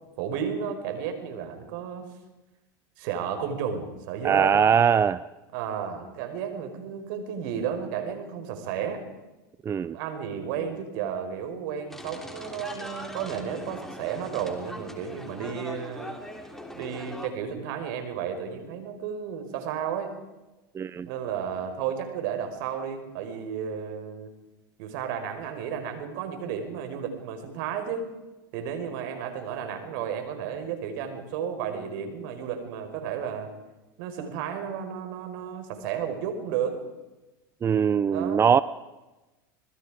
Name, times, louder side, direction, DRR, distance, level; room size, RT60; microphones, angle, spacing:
voice 1, 0.2-2.1 3.0-4.6 5.5-9.0 9.9-16.1 16.7-20.2 21.1-24.3 24.8-28.1 28.5-33.5 34.0-36.8 38.1-38.5, right 7 dB, 65° right, 7 dB, 5.0 m, -33 dB
voice 2, 4.2-5.2 9.7-9.9 20.8-21.1 37.6-38.6, right 7 dB, 25° right, 16 dB, 0.6 m, -21 dB
sound 1, 11.9-17.3, left 1 dB, 5° left, 3.3 m, -40 dB
26.0 x 21.0 x 5.0 m, 1.1 s
supercardioid pair, 110°, 11 cm